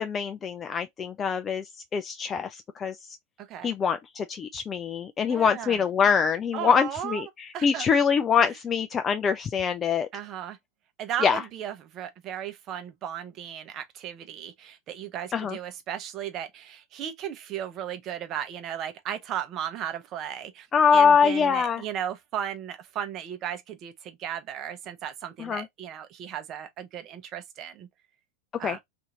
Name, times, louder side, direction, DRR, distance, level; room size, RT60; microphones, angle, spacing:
voice 1, 0.0-1.6 1.9-3.2 3.6-10.1 11.2-11.4 15.3-15.6 20.7-21.8 25.4-25.7 28.6-28.8, left 6 dB, 30° left, 0.3 m, -24 dB
voice 2, 3.4-3.7 5.3-5.8 6.5-7.2 7.5-7.9 10.1-10.6 11.0-20.7 20.9-27.9 28.6-28.8, right 9 dB, 40° right, 0.7 m, -35 dB
2.7 x 2.5 x 2.8 m
hypercardioid pair, 90°, 0 cm